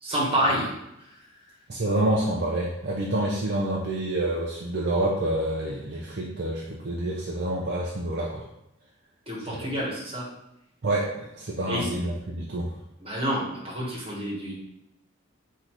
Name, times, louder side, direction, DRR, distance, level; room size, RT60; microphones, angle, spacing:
voice 1, 0.0-0.7 1.0-1.1 9.3-10.2 11.6-11.9 13.0-14.5, equal, 25° right, -6 dB, 1.5 m, -28 dB
voice 2, 1.7-8.4 9.5-9.7 10.8-12.7, right 1 dB, 50° right, -4 dB, 0.6 m, -28 dB
3.9 x 2.8 x 4.5 m, 0.83 s
head